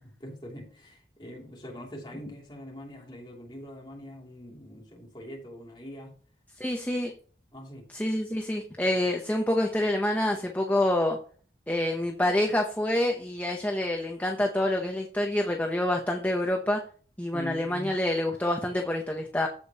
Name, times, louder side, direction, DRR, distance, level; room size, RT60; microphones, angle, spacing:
voice 1, 0.0-6.1 7.5-7.9 17.3-17.9, equal, 25° left, -1 dB, 2.7 m, -43 dB
voice 2, 6.6-7.1 7.9-11.2 11.7-16.8 17.2-19.5, left 1 dB, 10° left, 2 dB, 0.8 m, -27 dB
14.5 x 5.1 x 2.9 m, 0.42 s
head